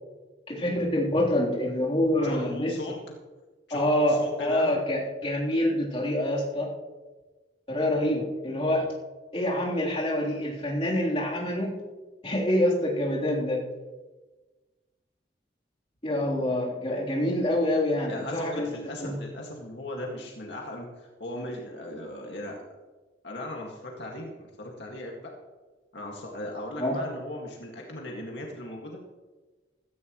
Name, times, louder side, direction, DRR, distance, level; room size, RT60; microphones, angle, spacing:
voice 1, 0.5-2.7 3.7-6.7 7.7-8.8 9.3-11.7 12.2-13.6 16.0-19.2 26.8-27.0, left 1 dB, 30° left, -5 dB, 3.5 m, -26 dB
voice 2, 2.2-3.0 3.7-4.8 18.1-22.6 23.2-25.3 25.9-29.0, left 1 dB, 70° left, -1 dB, 2.0 m, -37 dB
16.5 x 14.0 x 3.1 m, 1.3 s
head